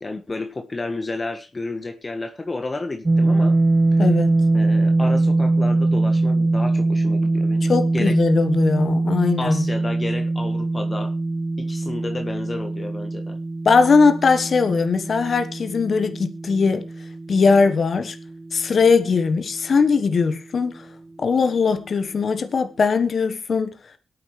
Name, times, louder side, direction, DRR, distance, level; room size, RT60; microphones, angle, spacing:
voice 1, 0.0-3.6 3.9-4.0 4.5-8.2 9.4-11.1 11.6-13.4, left 2 dB, 35° left, 1.5 m, -31 dB
sound 1, 3.1-19.0, right 2 dB, 30° right, 0.5 m, -22 dB
voice 2, 4.0-4.3 7.6-9.7 13.6-16.9 17.3-18.2 18.5-20.9 21.2-23.7, left 4 dB, 60° left, 1.3 m, -20 dB
22.5 x 8.7 x 3.3 m
supercardioid pair, 45°, 0 cm